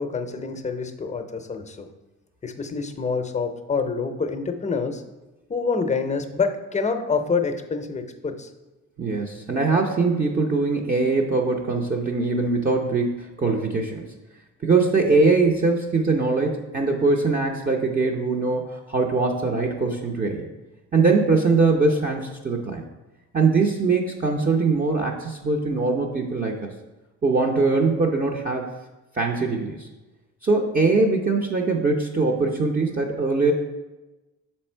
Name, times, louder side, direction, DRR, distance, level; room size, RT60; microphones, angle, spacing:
voice 1, 0.0-1.9 2.4-5.0 5.5-8.5, left 4 dB, 25° left, 7 dB, 0.6 m, -27 dB
voice 2, 9.0-14.1 14.6-20.4 20.9-22.8 23.3-26.7 27.2-28.7 29.1-29.9 30.4-33.5, right 3 dB, 30° right, 0 dB, 0.6 m, -22 dB
5.8 x 4.4 x 4.4 m, 1.1 s
cardioid pair, 90°, 30 cm